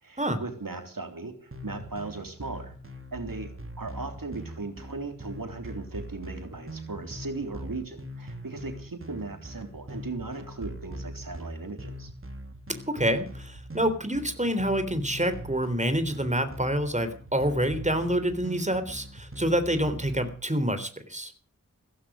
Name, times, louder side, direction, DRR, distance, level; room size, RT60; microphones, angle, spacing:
voice 1, 0.0-2.7 3.1-12.1, right 3 dB, 90° right, 6 dB, 3.5 m, -37 dB
sound 1, 1.5-20.3, equal, 40° right, 3.2 m, -42 dB
voice 2, 12.7-21.3, right 1 dB, 20° right, 10 dB, 3.6 m, -27 dB
16.5 x 15.0 x 5.0 m, 0.42 s
wide cardioid pair, 45°, 33 cm